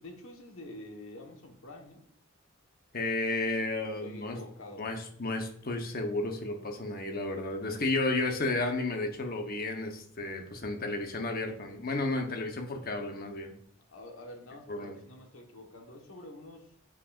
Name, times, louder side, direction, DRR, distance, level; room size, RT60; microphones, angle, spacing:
voice 1, 0.0-2.0 3.8-4.8 13.9-16.8, left 1 dB, 80° left, 3 dB, 1.4 m, -47 dB
voice 2, 2.9-4.4 4.8-13.5 14.7-15.0, left 2 dB, 45° left, 4 dB, 1.0 m, -32 dB
7.7 x 5.8 x 2.5 m, 0.64 s
head